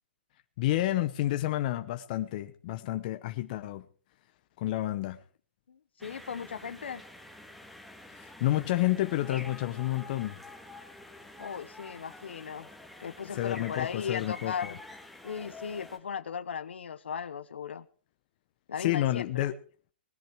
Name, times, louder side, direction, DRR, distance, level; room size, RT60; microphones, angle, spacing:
voice 1, 0.6-3.8 4.6-5.2 8.2-10.4 13.3-14.7 18.8-19.5, left 15 dB, 45° left, 1.0 m, -30 dB
voice 2, 6.0-7.0 11.4-12.7 13.0-14.8 15.2-17.8 18.7-19.5, left 7 dB, 85° left, 0.9 m, -37 dB
sound 1, 6.0-16.0, left 2 dB, ahead, 1.9 m, -48 dB
20.0 x 10.5 x 4.7 m
hypercardioid pair, 140°, 6 cm